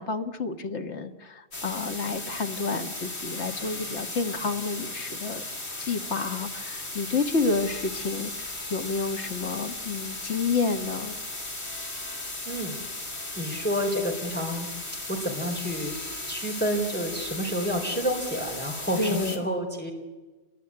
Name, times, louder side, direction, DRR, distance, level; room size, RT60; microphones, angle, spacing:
voice 1, 0.0-5.4 5.8-11.2 19.0-19.4, left 4 dB, 90° left, 6 dB, 1.8 m, -30 dB
sound 1, 1.5-19.4, left 2 dB, 70° left, 3.4 m, -36 dB
voice 2, 12.5-12.8 13.4-14.7 15.1-19.9, equal, 10° left, 1 dB, 4.1 m, -29 dB
27.0 x 21.0 x 9.8 m, 1.2 s
omnidirectional pair, 1.1 m